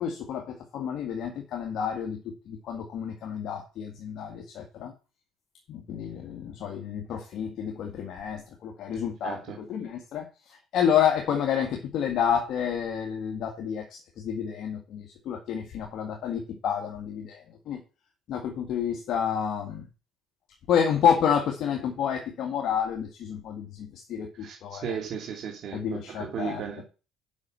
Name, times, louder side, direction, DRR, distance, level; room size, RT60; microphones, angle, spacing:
voice 1, 0.0-4.9 5.7-9.4 9.7-17.4 17.7-17.8 18.3-19.9 20.7-25.0 25.7-26.8, left 8 dB, 60° left, 1.9 m, -29 dB
voice 2, 9.2-9.6 24.4-26.8, right 7 dB, 55° right, 2.4 m, -35 dB
8.5 x 5.9 x 6.3 m
cardioid pair, 105°, 0 cm